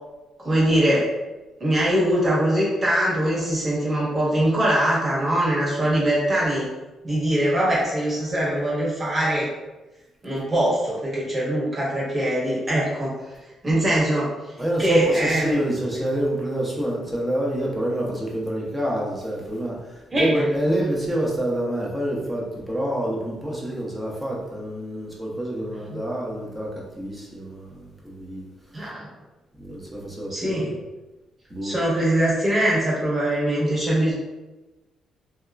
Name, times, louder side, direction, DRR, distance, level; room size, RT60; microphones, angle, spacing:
voice 1, 0.4-1.1 1.6-6.7 7.0-9.5 10.2-13.1 13.6-14.3 14.8-15.6 20.1-20.4 28.7-29.1 30.3-30.7 31.6-34.1, right 1 dB, 35° right, -6 dB, 1.2 m, -22 dB
voice 2, 14.6-26.7 27.0-28.5 29.6-30.6 31.5-31.8, right 1 dB, 10° right, -4 dB, 0.7 m, -27 dB
2.7 x 2.3 x 2.3 m, 1.1 s
cardioid pair, 90°, 0 cm